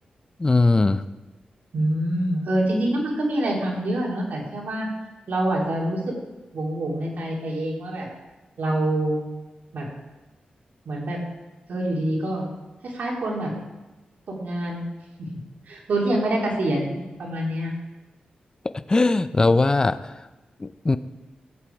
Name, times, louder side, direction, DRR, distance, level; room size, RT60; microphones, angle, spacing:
voice 1, 0.4-1.0 18.9-20.3 20.6-21.0, left 3 dB, 25° left, 12 dB, 0.5 m, -20 dB
voice 2, 1.7-4.9 5.3-6.1 6.5-8.1 8.6-9.2 9.7-9.9 10.8-11.2 11.7-12.5 12.8-13.5 14.3-14.9 15.7-17.7, right 1 dB, 75° right, -2 dB, 3.3 m, -25 dB
15.5 x 8.2 x 4.7 m, 1.1 s
wide cardioid pair, 90°, 3 cm